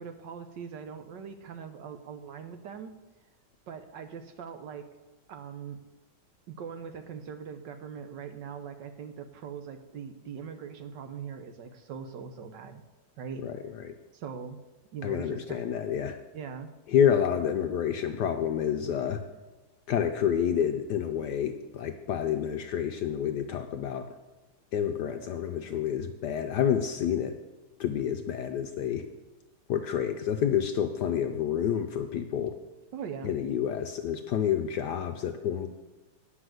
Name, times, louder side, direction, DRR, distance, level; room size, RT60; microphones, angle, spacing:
voice 1, 0.0-3.0 3.7-4.9 5.3-5.8 6.5-12.8 13.2-13.4 14.1-14.6 14.9-15.6 16.3-16.7 32.9-33.3, right 6 dB, 65° right, 8 dB, 1.3 m, -41 dB
voice 2, 15.0-16.2 16.9-19.2 19.9-24.1 24.7-27.3 27.8-29.1 29.7-32.5 33.2-35.7, left 9 dB, 70° left, 6 dB, 1.0 m, -28 dB
9.8 x 6.1 x 7.8 m, 1.2 s
omnidirectional pair, 2.3 m